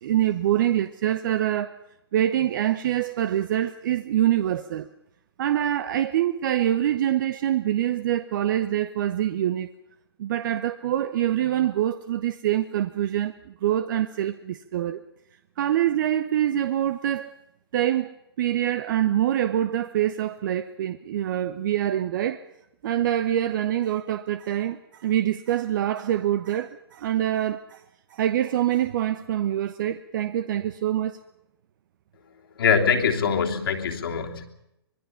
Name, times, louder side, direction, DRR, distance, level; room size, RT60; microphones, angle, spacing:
voice 1, 0.0-1.8 2.1-4.9 5.4-9.7 10.2-15.0 15.6-17.3 17.7-22.4 22.8-27.8 28.1-31.2, right 11 dB, 50° right, 0.9 m, -25 dB
voice 2, 32.6-34.4, left 6 dB, 65° left, 3.2 m, -23 dB
25.0 x 20.5 x 5.8 m
figure-of-eight pair, 120°, 13 cm